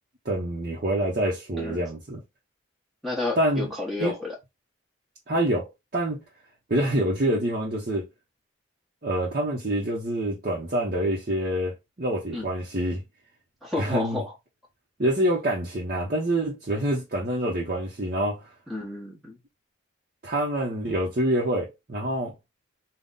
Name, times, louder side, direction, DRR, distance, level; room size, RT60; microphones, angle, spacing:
voice 1, 0.2-2.2 3.4-3.7 4.0-4.1 5.3-6.2 6.7-8.1 9.0-13.0 13.8-14.2 15.0-18.5 20.2-22.3, right 1 dB, 45° right, 0.8 m, -26 dB
voice 2, 3.0-4.4 12.3-12.5 13.6-14.3 18.7-19.4, left 2 dB, ahead, 1.1 m, -31 dB
3.6 x 2.3 x 3.8 m
head